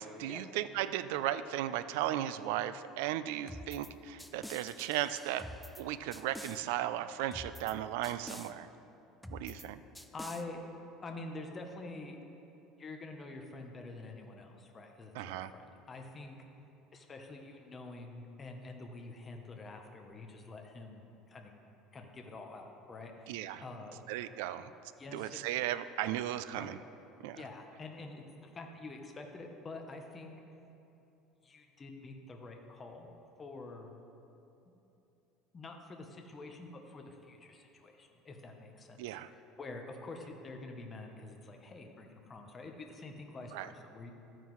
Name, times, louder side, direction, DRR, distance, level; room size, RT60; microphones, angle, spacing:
voice 1, 0.0-5.5 5.8-8.7 9.3-9.8 15.1-15.5 23.3-23.6 24.1-24.7 25.1-26.8 27.2-27.4 39.0-39.3 43.5-43.7, right 12 dB, 85° right, 13 dB, 0.4 m, -36 dB
sound 1, 3.5-3.9 4.2-5.8 6.1-6.6 7.3-7.7 8.0-8.5 9.2-9.7 10.0-10.4, left 1 dB, ahead, 0.3 m, -47 dB
voice 2, 10.1-10.6 11.0-12.2 12.8-16.4 16.9-21.5 21.9-23.3 23.6-24.0 25.0-25.4 26.6-26.8 27.4-30.3 31.4-33.1 33.4-33.9 35.5-44.1, left 3 dB, 20° left, 3 dB, 0.8 m, -47 dB
13.0 x 9.0 x 3.1 m, 2.9 s
cardioid pair, 160°, 0 cm